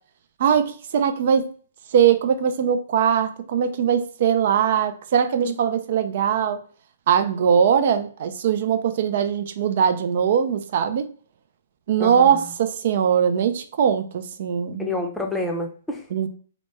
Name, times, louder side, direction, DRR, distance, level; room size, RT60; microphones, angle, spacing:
voice 1, 0.4-1.5 1.9-6.6 7.1-11.1 11.9-14.9 16.1-16.3, right 8 dB, 55° right, 9 dB, 0.4 m, -21 dB
voice 2, 12.0-12.4 14.8-16.1, left 2 dB, 5° left, 1 dB, 0.6 m, -29 dB
2.9 x 2.1 x 3.4 m, 0.43 s
hypercardioid pair, 135°, 0 cm